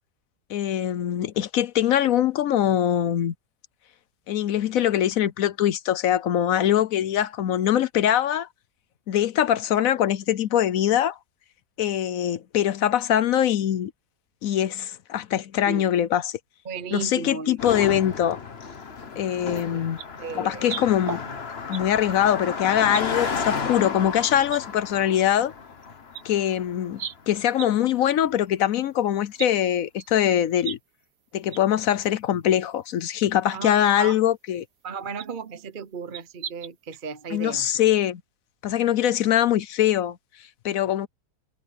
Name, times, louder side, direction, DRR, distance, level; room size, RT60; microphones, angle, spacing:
voice 1, 0.5-3.3 4.3-8.5 9.1-11.2 11.8-13.9 14.4-16.4 16.9-18.4 19.2-20.0 20.3-21.2 21.7-25.5 26.2-27.0 27.3-30.8 31.3-34.6 37.3-38.2 38.6-40.2 40.6-41.1, left 11 dB, 65° left, 1.0 m, -23 dB
voice 2, 16.6-17.8 19.7-19.8 20.2-20.7 33.5-34.2 34.8-37.7, right 5 dB, 40° right, 0.8 m, -35 dB
Car passing by, 17.6-27.2, left 5 dB, 40° left, 1.5 m, -33 dB
sound 1, 19.5-19.6 20.0-20.1 20.6-21.8 22.1-22.3 22.9-23.4 24.0-24.1 24.5-24.6 25.8-25.9 26.1-26.2 27.0-27.2 27.6-27.7 28.0-28.1 28.4-28.5 29.4-29.5 30.0-30.8 31.0-31.1 31.5-31.6 32.0-32.1 33.1-33.2 33.9-34.0 35.2-35.4 36.1-37.0 37.3-37.4 37.7-37.8, right 9 dB, 75° right, 1.7 m, -36 dB
omnidirectional pair, 1.8 m